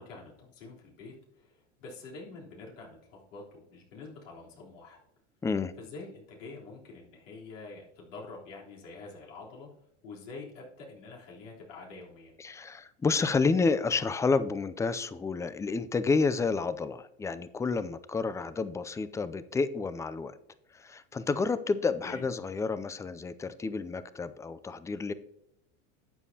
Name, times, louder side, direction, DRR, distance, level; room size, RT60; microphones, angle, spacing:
voice 1, 0.0-5.0 5.8-9.7 10.0-12.3 22.0-22.2, left 3 dB, 85° left, -3 dB, 3.6 m, -46 dB
voice 2, 5.4-5.7 12.4-20.4 20.7-25.1, left 4 dB, 10° left, 14 dB, 0.3 m, -30 dB
12.5 x 8.3 x 2.8 m, 0.79 s
supercardioid pair, 110°, 37 cm